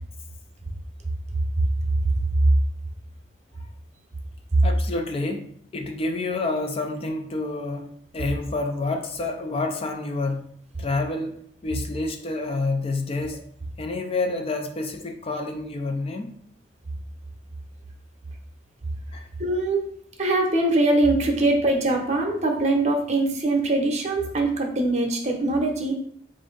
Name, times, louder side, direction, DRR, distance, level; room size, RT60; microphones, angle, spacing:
voice 1, 4.6-10.5 10.8-13.4 13.8-16.3 19.1-19.3, left 3 dB, 30° left, 0.4 m, -28 dB
voice 2, 19.4-19.9 20.2-26.0, right 2 dB, 40° right, 0.7 m, -22 dB
4.1 x 2.6 x 3.8 m
head